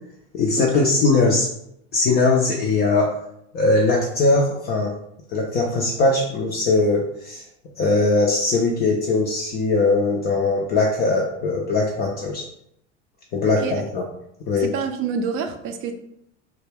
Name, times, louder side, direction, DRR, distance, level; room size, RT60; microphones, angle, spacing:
voice 1, 0.3-1.5 1.9-3.2 3.5-4.9 5.3-7.4 7.8-12.5 13.3-14.0 14.5-14.7, left 3 dB, 30° left, 0 dB, 0.3 m, -20 dB
voice 2, 14.6-15.9, right 5 dB, 35° right, 7 dB, 0.4 m, -27 dB
2.2 x 2.2 x 3.3 m, 0.75 s
hypercardioid pair, 80°, 38 cm